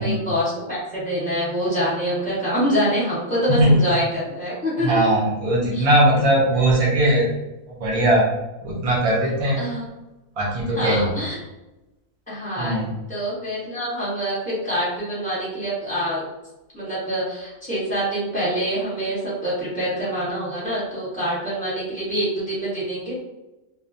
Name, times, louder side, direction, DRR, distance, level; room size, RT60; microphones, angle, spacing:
voice 1, 0.0-4.9 5.7-5.8 9.6-9.8 10.7-11.4 12.3-12.8 13.1-16.2 16.7-23.2, equal, 5° left, -9 dB, 1.0 m, -25 dB
voice 2, 4.8-7.3 7.7-8.3 8.6-9.6 10.4-11.1 12.6-12.9, right 1 dB, 55° right, -5 dB, 0.4 m, -19 dB
2.3 x 2.2 x 2.6 m, 1.0 s
omnidirectional pair, 1.4 m